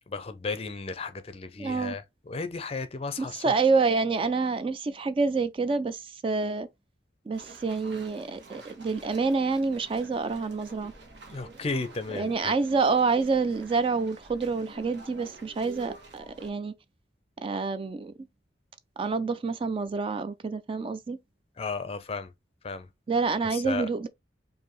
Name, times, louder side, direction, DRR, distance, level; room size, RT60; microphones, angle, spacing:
voice 1, 0.1-3.5 11.3-12.6 21.6-22.3 22.6-22.9 23.4-23.9, left 4 dB, 35° left, 0.5 m, -34 dB
voice 2, 1.6-1.9 3.2-6.7 7.3-10.9 12.1-16.7 17.4-18.1 19.0-21.2 23.1-24.1, right 4 dB, 30° right, 0.3 m, -27 dB
sound 1, 7.3-16.5, right 3 dB, 80° right, 1.4 m, -49 dB
4.8 x 2.6 x 3.0 m
head